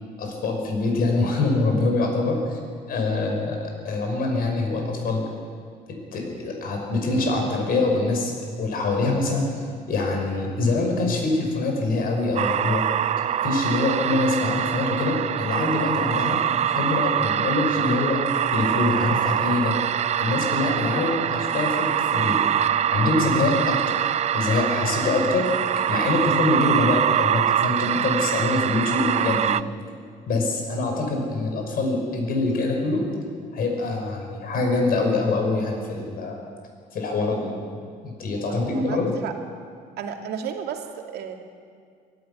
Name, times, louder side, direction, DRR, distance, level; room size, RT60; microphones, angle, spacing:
voice 1, 0.2-2.6 2.9-3.6 3.8-5.2 6.1-9.5 9.9-12.8 13.4-16.4 16.7-18.2 18.5-19.8 20.2-22.5 22.9-24.0 24.3-25.5 25.9-29.5 30.3-33.0 33.5-36.4 36.9-37.5 38.0-39.1, left 3 dB, 60° left, 2 dB, 5.9 m, -24 dB
voice 2, 3.1-3.4 38.3-39.3 40.0-41.4, right 7 dB, 75° right, 3 dB, 2.5 m, -34 dB
sound 1, 12.4-29.6, right 10 dB, 40° right, 0.4 m, -24 dB
23.5 x 13.5 x 9.9 m, 2.1 s
cardioid pair, 110°, 17 cm